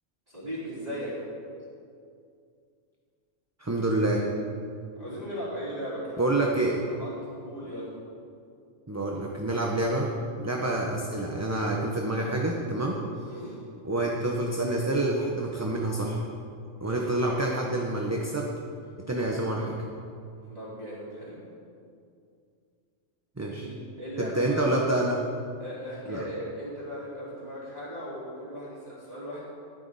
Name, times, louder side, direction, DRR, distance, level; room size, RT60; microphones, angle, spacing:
voice 1, 0.3-1.3 5.0-6.4 6.8-8.0 13.3-13.6 16.8-17.1 20.4-21.4 23.6-24.7 25.6-29.4, equal, 30° right, -13 dB, 4.1 m, -37 dB
voice 2, 3.6-4.2 6.2-6.8 8.9-10.1 10.4-13.0 13.8-16.2 16.8-18.5 19.1-19.8 23.4-23.7 24.2-25.3 26.1-26.2, right 2 dB, 15° right, -1 dB, 0.9 m, -27 dB
15.0 x 12.0 x 4.2 m, 2.4 s
omnidirectional pair, 1.3 m